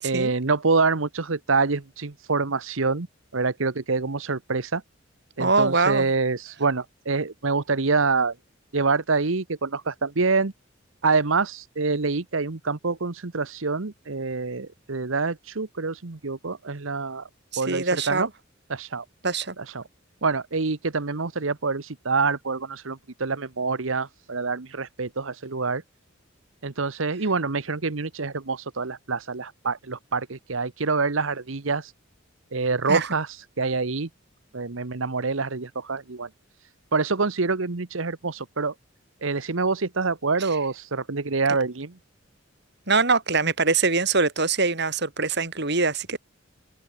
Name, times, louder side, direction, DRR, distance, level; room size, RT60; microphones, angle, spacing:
voice 1, 0.0-3.1 3.3-4.8 5.4-8.3 8.7-10.5 11.0-17.3 17.6-18.3 18.7-19.0 19.6-19.8 20.2-25.8 26.6-31.9 32.5-34.1 34.5-36.3 36.9-38.7 39.2-41.9, right 4 dB, 75° right, 1.2 m, -26 dB
voice 2, 5.4-6.1 17.5-18.3 19.2-19.5 32.9-33.1 42.9-46.2, right 4 dB, 55° right, 5.0 m, -23 dB
head